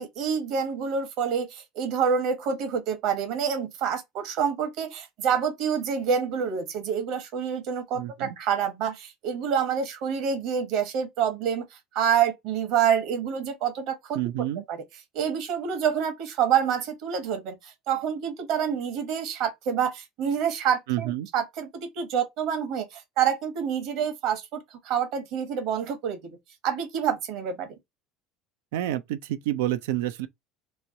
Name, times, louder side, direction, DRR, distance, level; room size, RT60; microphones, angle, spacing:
voice 1, 0.0-14.2 14.7-14.8 15.1-26.4 26.6-27.7, right 7 dB, 65° right, 1.2 m, -27 dB
voice 2, 7.9-8.3 14.2-14.6 20.9-21.3 28.7-30.3, right 14 dB, 80° right, 0.5 m, -28 dB
3.1 x 2.3 x 3.9 m
supercardioid pair, 95°, 0 cm